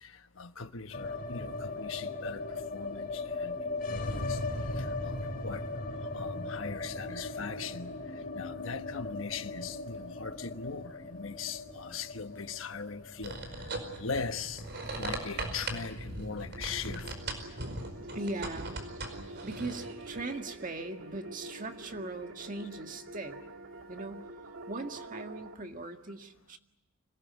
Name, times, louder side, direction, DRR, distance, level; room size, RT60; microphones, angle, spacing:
voice 1, 0.0-3.6 3.9-4.4 4.7-5.6 6.1-8.0 8.3-13.4 13.9-14.6 15.0-17.1, left 5 dB, 75° left, 1.2 m, -40 dB
sound 1, 0.9-17.0 17.3-17.4 17.7-18.4, left 2 dB, 45° left, 4.1 m, -39 dB
sound 2, 13.2-20.2, right 2 dB, 55° right, 4.9 m, -39 dB
sound 3, 16.0-25.5, right 1 dB, 80° right, 1.9 m, -46 dB
voice 2, 18.1-18.8 19.4-23.4 23.9-26.6, right 2 dB, 40° right, 1.8 m, -40 dB
26.0 x 18.5 x 9.7 m
head